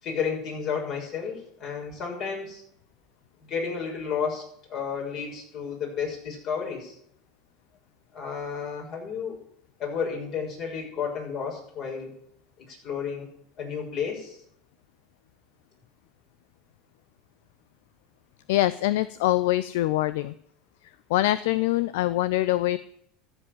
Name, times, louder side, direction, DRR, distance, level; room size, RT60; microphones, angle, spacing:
voice 1, 0.0-2.6 3.4-4.4 4.7-7.0 8.1-9.4 9.8-12.2 12.7-13.3 13.6-14.4, left 6 dB, 50° left, -1 dB, 6.3 m, -32 dB
voice 2, 18.5-20.3 21.1-22.8, left 15 dB, 70° left, 16 dB, 0.5 m, -24 dB
14.0 x 5.4 x 9.3 m, 0.69 s
hypercardioid pair, 80°, 0 cm